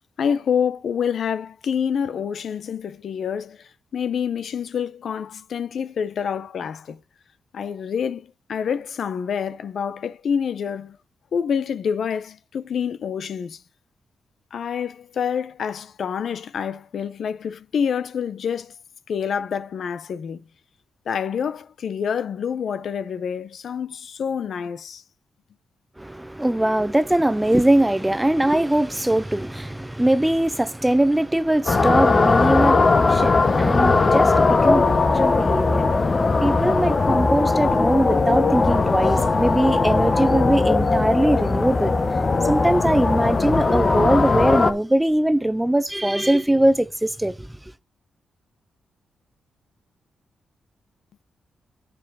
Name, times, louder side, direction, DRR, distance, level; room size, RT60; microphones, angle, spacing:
voice 1, 0.2-7.0 7.5-11.0 11.3-13.6 14.5-18.7 19.1-20.4 21.1-25.0, left 7 dB, 60° left, 0.7 m, -27 dB
voice 2, 26.0-35.9 36.4-41.9 42.4-47.6, right 1 dB, 5° right, 0.4 m, -21 dB
sound 1, 31.7-44.7, left 3 dB, 30° left, 0.9 m, -19 dB
9.6 x 5.2 x 4.7 m
wide cardioid pair, 140°, 0 cm